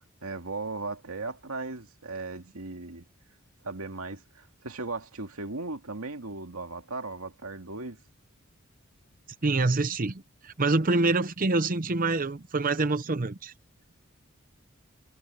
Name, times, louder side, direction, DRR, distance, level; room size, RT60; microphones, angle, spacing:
voice 1, 0.0-3.1 3.6-8.0, right 3 dB, 85° right, 2.2 m, -37 dB
voice 2, 9.4-13.5, right 3 dB, 40° right, 0.8 m, -26 dB
head